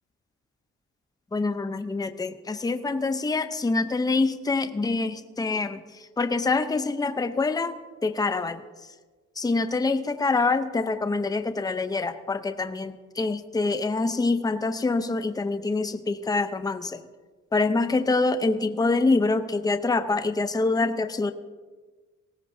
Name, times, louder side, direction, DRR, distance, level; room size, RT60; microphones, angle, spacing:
voice 1, 1.3-5.8 6.2-7.7 8.0-8.6 9.4-17.0 17.5-21.3, left 3 dB, 10° left, 10 dB, 0.7 m, -25 dB
19.5 x 17.5 x 2.7 m, 1.4 s
cardioid pair, 90°, 30 cm